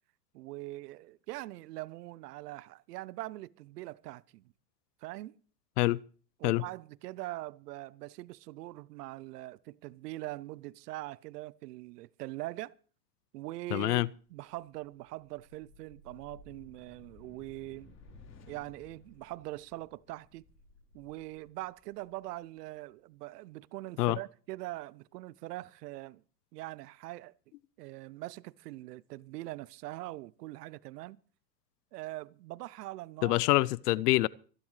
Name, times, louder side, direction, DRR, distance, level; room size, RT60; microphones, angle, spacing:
voice 1, 0.3-4.4 5.0-5.4 6.4-12.7 13.3-14.0 14.3-17.9 18.5-20.5 20.9-26.2 26.5-27.3 27.8-31.2 31.9-33.5, right 18 dB, 70° right, 0.6 m, -42 dB
voice 2, 13.7-14.1 24.0-24.2 33.2-34.3, left 19 dB, 65° left, 0.6 m, -26 dB
sound 1, 14.5-22.8, left 3 dB, 30° left, 4.3 m, -58 dB
25.5 x 10.5 x 3.2 m
hypercardioid pair, 110°, 50 cm